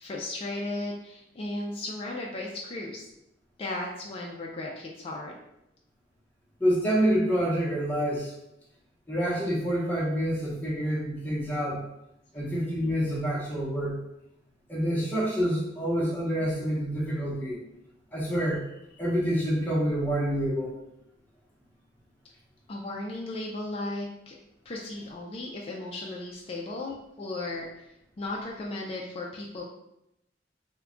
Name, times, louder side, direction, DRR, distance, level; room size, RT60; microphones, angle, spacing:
voice 1, 0.0-3.1 3.6-5.3 22.7-24.3 24.7-27.9 28.2-29.6, left 2 dB, 30° left, -2 dB, 0.3 m, -35 dB
voice 2, 6.6-8.3 9.1-11.8 12.3-14.0 14.7-17.6 18.1-18.6 19.0-20.7, equal, 10° left, -7 dB, 0.8 m, -27 dB
2.3 x 2.1 x 3.7 m, 0.85 s
head